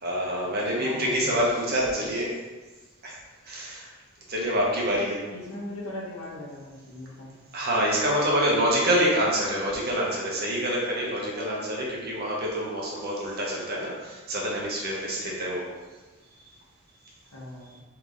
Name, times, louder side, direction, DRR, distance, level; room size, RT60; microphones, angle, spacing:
voice 1, 0.0-2.3 3.0-3.2 3.4-3.9 4.3-5.2 7.5-15.7, equal, 45° right, -3 dB, 1.0 m, -26 dB
voice 2, 0.7-1.3 1.9-2.1 5.3-7.3 17.3-17.8, left 1 dB, 80° left, -5 dB, 1.2 m, -39 dB
3.5 x 3.4 x 3.7 m, 1.2 s
head